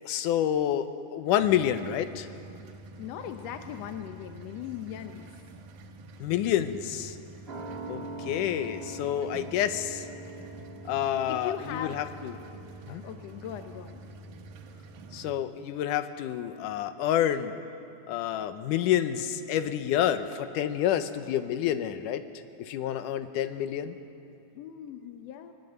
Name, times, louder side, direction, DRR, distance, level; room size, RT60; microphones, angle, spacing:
voice 1, 0.0-2.3 6.2-7.2 7.9-10.1 10.9-12.4 12.9-13.0 15.1-17.6 18.1-22.2 22.6-24.0, left 10 dB, 90° left, 11 dB, 2.4 m, -28 dB
sound 1, 1.4-15.3, right 2 dB, 90° right, 2.7 m, -47 dB
voice 2, 3.0-5.3 11.3-12.0 12.9-14.0 24.5-25.5, left 10 dB, 70° left, 7 dB, 1.7 m, -39 dB
sound 2, 7.5-14.5 14.8-14.9, right 2 dB, 20° right, 2.9 m, -44 dB
20.5 x 20.0 x 8.0 m, 2.8 s
omnidirectional pair, 3.5 m